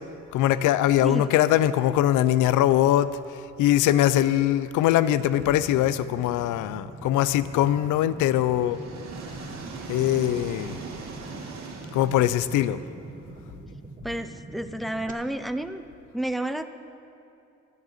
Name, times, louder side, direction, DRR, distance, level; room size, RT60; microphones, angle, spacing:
voice 1, 0.3-3.1 3.6-8.8 9.9-10.8 11.9-12.8, left 12 dB, 85° left, 15 dB, 0.5 m, -22 dB
sound 1, 5.1-15.1, right 3 dB, 25° right, 1.0 m, -44 dB
sound 2, 7.6-13.5, right 4 dB, 65° right, 2.1 m, -41 dB
voice 2, 14.0-15.8 16.1-16.7, right 1 dB, ahead, 9 dB, 0.5 m, -30 dB
11.5 x 6.6 x 8.7 m, 2.7 s
cardioid pair, 90°, 30 cm